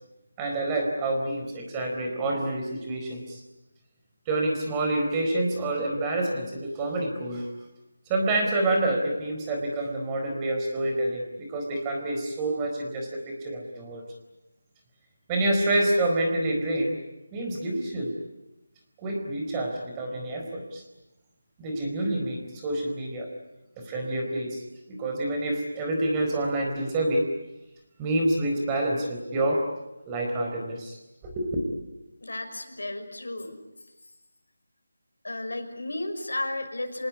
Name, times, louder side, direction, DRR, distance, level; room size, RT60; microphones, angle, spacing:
voice 1, 0.4-3.4 4.3-7.5 8.1-14.0 15.3-17.0 17.3-18.1 19.0-20.8 21.6-23.3 23.8-24.6 24.9-27.3 28.0-29.6 30.1-31.0 31.2-31.6, right 1 dB, 15° right, 1 dB, 4.3 m, -27 dB
voice 2, 32.2-33.6 35.2-37.1, left 2 dB, 85° left, 6 dB, 5.7 m, -33 dB
27.5 x 19.0 x 9.7 m, 0.98 s
figure-of-eight pair, 170°, 0 cm